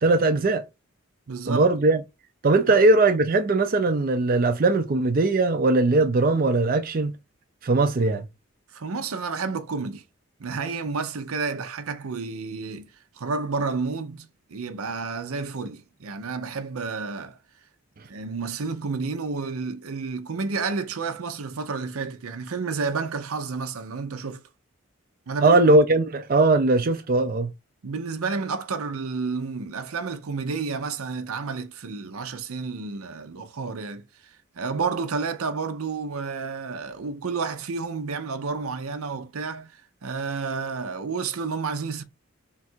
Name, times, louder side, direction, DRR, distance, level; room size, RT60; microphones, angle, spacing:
voice 1, 0.0-0.6 1.5-2.0 2.4-7.2 7.6-8.3 25.4-27.5, right 2 dB, 40° right, 0.4 m, -20 dB
voice 2, 1.3-1.7 2.7-2.8 8.7-10.0 10.4-17.4 18.1-24.4 25.3-25.6 25.9-26.1 27.8-42.0, right 4 dB, 80° right, 0.6 m, -31 dB
3.6 x 2.4 x 4.3 m
head